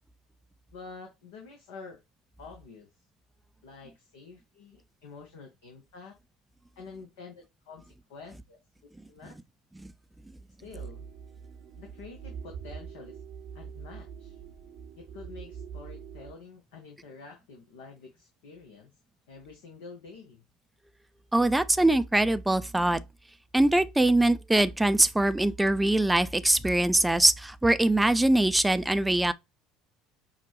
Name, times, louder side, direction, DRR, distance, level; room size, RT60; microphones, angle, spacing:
voice 1, 0.7-2.0 2.4-2.9 3.6-6.2 6.8-8.6 9.1-9.3 10.6-11.1 11.8-13.2 13.5-14.4 15.0-18.9 19.3-20.5, left 4 dB, 65° left, 1.1 m, -48 dB
sound 1, 10.7-16.3, right 7 dB, 55° right, 0.8 m, -43 dB
voice 2, 21.3-23.0 23.5-29.3, right 1 dB, 5° right, 0.5 m, -23 dB
5.9 x 2.4 x 3.2 m
figure-of-eight pair, 65°, 0 cm